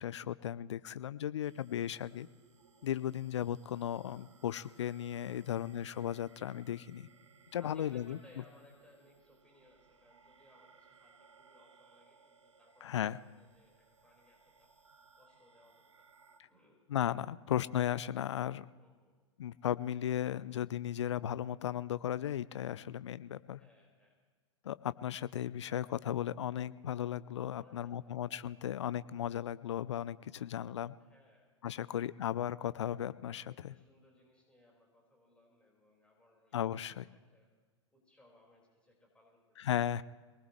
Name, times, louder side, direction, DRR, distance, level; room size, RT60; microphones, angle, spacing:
voice 1, 0.0-2.3 2.8-7.1 7.5-8.2 12.8-13.2 16.9-18.7 19.4-23.6 24.6-31.0 31.6-33.7 36.5-37.1 39.6-40.0, left 10 dB, 70° left, 17 dB, 0.5 m, -36 dB
sound 1, 1.4-16.4, right 5 dB, 80° right, 1.4 m, -64 dB
voice 2, 5.3-5.7 7.6-14.7 15.1-16.1 16.5-16.8 18.7-19.2 23.6-24.2 27.5-28.5 31.0-31.5 31.8-32.0 33.4-37.5 37.9-39.8, left 1 dB, 5° left, -2 dB, 4.9 m, -65 dB
23.0 x 19.5 x 3.2 m, 1.4 s
figure-of-eight pair, 100°, 15 cm